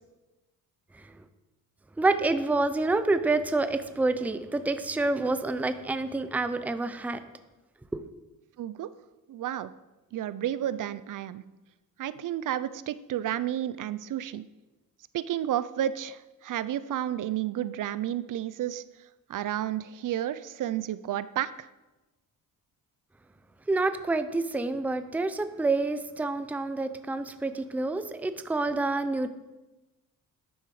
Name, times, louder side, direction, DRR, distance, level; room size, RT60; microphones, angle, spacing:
voice 1, 2.0-7.2 7.9-8.0 23.7-29.3, right 3 dB, 5° right, 10 dB, 0.5 m, -28 dB
voice 2, 8.6-8.9 9.3-9.7 10.1-11.4 12.0-14.4 15.1-18.8 19.3-21.7, right 11 dB, 60° right, 15 dB, 0.5 m, -31 dB
12.0 x 10.0 x 4.8 m, 1.1 s
wide cardioid pair, 150°, 35 cm